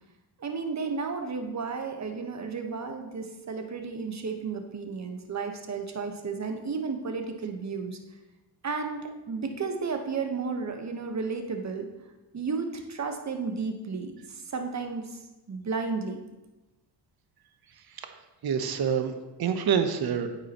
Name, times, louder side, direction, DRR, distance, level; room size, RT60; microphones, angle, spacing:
voice 1, 0.4-8.0 8.6-11.9 12.3-15.2 15.5-16.2, right 4 dB, 35° right, 5 dB, 1.3 m, -33 dB
voice 2, 18.4-20.3, right 7 dB, 50° right, 8 dB, 1.0 m, -27 dB
9.1 x 6.0 x 3.0 m, 1.1 s
hypercardioid pair, 50°, 47 cm